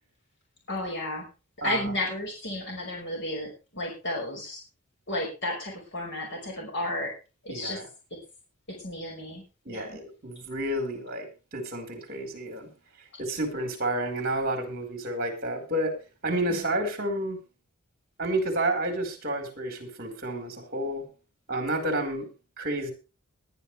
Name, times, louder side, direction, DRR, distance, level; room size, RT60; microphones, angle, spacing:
voice 1, 0.7-1.3 1.6-4.6 5.1-7.1 7.4-7.8 8.7-10.0 16.5-16.6, left 1 dB, 55° left, -1 dB, 5.5 m, -33 dB
voice 2, 1.6-1.9 7.5-7.9 9.6-12.7 13.2-16.0 16.2-17.4 18.2-21.0 21.5-22.3 22.6-22.9, right 1 dB, 45° right, 5 dB, 4.7 m, -30 dB
20.0 x 11.0 x 3.4 m, 0.32 s
head